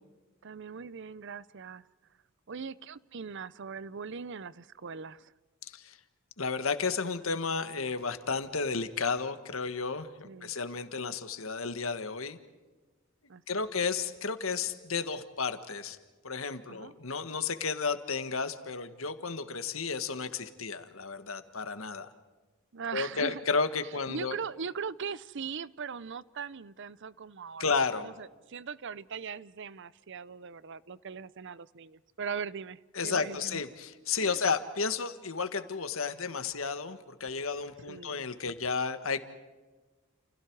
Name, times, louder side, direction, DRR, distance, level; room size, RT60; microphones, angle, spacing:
voice 1, 0.4-1.8 2.5-5.3 10.2-10.5 13.3-13.6 16.7-17.0 22.7-23.4 24.1-27.6 28.0-33.6 34.2-34.4 37.9-38.3, right 6 dB, 60° right, 19 dB, 0.7 m, -40 dB
voice 2, 5.6-6.0 6.4-12.4 13.5-16.0 16.2-22.1 22.9-24.4 27.6-28.1 32.9-39.2, left 5 dB, 80° left, 10 dB, 1.7 m, -32 dB
30.0 x 29.0 x 4.8 m, 1.3 s
head